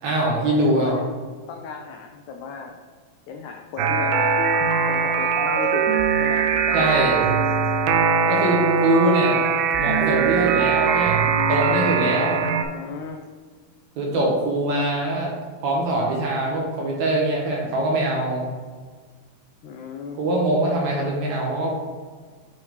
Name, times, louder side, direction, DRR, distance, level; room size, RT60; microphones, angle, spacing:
voice 1, 0.0-1.0 6.7-7.2 8.3-9.5 9.8-12.5 14.0-15.3 15.6-18.4 20.2-21.7, right 1 dB, 70° right, -2 dB, 2.0 m, -23 dB
voice 2, 0.7-1.1 1.5-2.7 3.3-4.3 4.9-5.8 6.2-6.9 12.6-13.2 19.6-20.2, left 6 dB, 85° left, 2 dB, 1.7 m, -35 dB
sound 1, 3.8-12.6, right 6 dB, 90° right, 2.3 m, -21 dB
7.1 x 4.6 x 3.1 m, 1.5 s
omnidirectional pair, 4.0 m